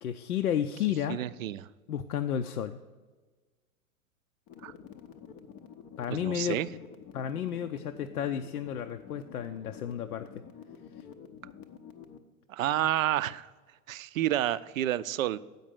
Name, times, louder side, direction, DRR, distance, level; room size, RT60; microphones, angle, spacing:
voice 1, 0.0-1.2 1.9-2.8 6.0-6.6 7.1-10.3, left 9 dB, 80° left, 7 dB, 0.5 m, -32 dB
voice 2, 1.1-1.7 4.6-4.7 6.1-6.7 12.5-13.5 13.9-15.4, right 13 dB, 65° right, 16 dB, 0.5 m, -29 dB
sound 1, 4.5-12.2, left 7 dB, 20° left, 0.4 m, -49 dB
7.8 x 5.3 x 7.4 m, 1.3 s
figure-of-eight pair, 100°, 43 cm